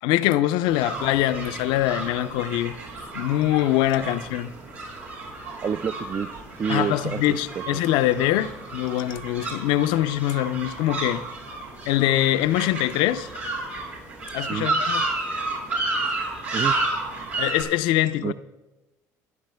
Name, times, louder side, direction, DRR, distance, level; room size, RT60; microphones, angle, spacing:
voice 1, 0.0-2.8 3.1-4.5 6.7-11.2 11.9-13.3 14.3-15.0 17.4-18.3, left 14 dB, 70° left, 0.5 m, -23 dB
sound 1, 0.7-17.6, right 2 dB, 85° right, 5.5 m, -31 dB
voice 2, 5.6-7.2 7.7-7.8 14.5-14.7 16.5-16.7 18.2-18.3, right 7 dB, 35° right, 0.4 m, -28 dB
30.0 x 12.0 x 2.2 m
hypercardioid pair, 60°, 8 cm